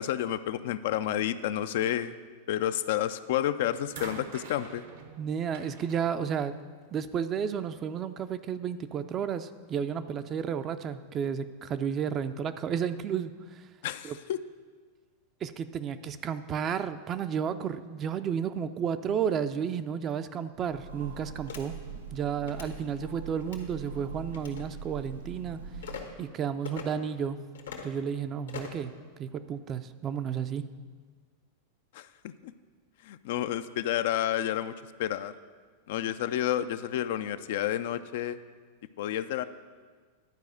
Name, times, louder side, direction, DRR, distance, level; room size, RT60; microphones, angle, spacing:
voice 1, 0.0-2.2 2.5-4.9 13.8-14.4 31.9-32.5 33.0-35.3 35.9-38.4 39.0-39.4, left 11 dB, 65° left, 12 dB, 0.4 m, -30 dB
sound 1, 3.0-3.3 3.9-7.2 8.2-8.3, right 5 dB, 70° right, 1.0 m, -47 dB
voice 2, 5.2-6.6 6.9-13.3 14.0-14.2 15.4-21.8 22.1-25.6 26.2-27.4 27.8-28.9 29.2-30.6, right 7 dB, 35° right, 11 dB, 0.4 m, -32 dB
Train, 20.6-26.3, right 5 dB, 90° right, 0.7 m, -43 dB
sound 2, 21.5-21.6 22.4-22.7 23.4-23.7 24.3-24.6 25.8-26.0 26.6-26.9 27.5-27.9 28.5-28.8, left 7 dB, 85° left, 1.2 m, -41 dB
10.5 x 4.8 x 6.3 m, 1.5 s
hypercardioid pair, 100°, 0 cm